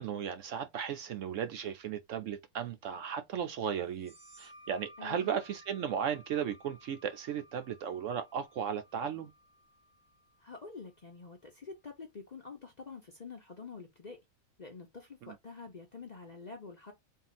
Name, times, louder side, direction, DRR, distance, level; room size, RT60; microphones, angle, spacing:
voice 1, 0.0-9.3 15.2-15.3, right 8 dB, 65° right, 0.8 m, -36 dB
sound 1, 3.9-11.2, equal, 5° right, 0.9 m, -59 dB
voice 2, 5.0-5.3 10.4-14.2 14.6-16.9, left 4 dB, 40° left, 0.6 m, -47 dB
3.7 x 2.4 x 4.0 m
omnidirectional pair, 1.6 m